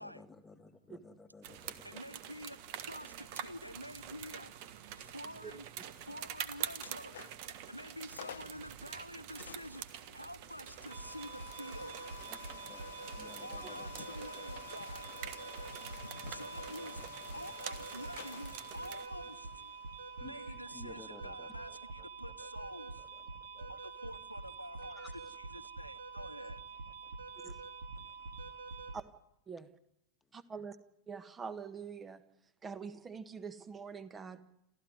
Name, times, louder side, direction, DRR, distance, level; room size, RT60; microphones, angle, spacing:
voice 1, 0.0-3.1 4.9-5.0 5.5-6.3 8.4-8.8 12.3-12.4 12.7-12.8 13.1-14.6 15.2-15.9 20.2-22.1 23.0-23.8 24.6-25.3 26.4-26.5 27.0-27.5 27.9-28.9, left 4 dB, 15° left, 1.7 m, -58 dB
sound 1, 1.4-19.1, right 10 dB, 45° right, 1.5 m, -47 dB
voice 2, 1.8-5.7 6.0-7.2 7.7-12.1 13.3-15.3 15.7-25.0 25.4-26.8, equal, 90° left, 0.8 m, -48 dB
sound 2, 6.8-7.5 7.9-8.0 8.2-8.6 9.4-22.1, left 11 dB, 60° left, 0.8 m, -52 dB
sound 3, 10.9-29.0, right 4 dB, 70° right, 2.1 m, -46 dB
voice 3, 30.3-30.8 31.1-32.2 32.6-34.4, right 5 dB, 20° right, 1.6 m, -44 dB
28.5 x 14.0 x 9.7 m
figure-of-eight pair, 90°, 0 cm